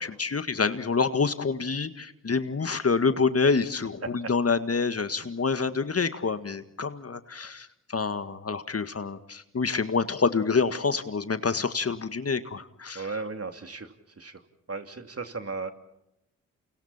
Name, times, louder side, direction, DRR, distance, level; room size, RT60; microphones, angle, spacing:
voice 1, 0.0-13.1, left 4 dB, 40° left, 11 dB, 1.8 m, -27 dB
voice 2, 12.9-14.4 14.7-15.7, right 4 dB, 40° right, 7 dB, 3.0 m, -36 dB
29.5 x 29.0 x 4.4 m, 0.85 s
hypercardioid pair, 40°, 38 cm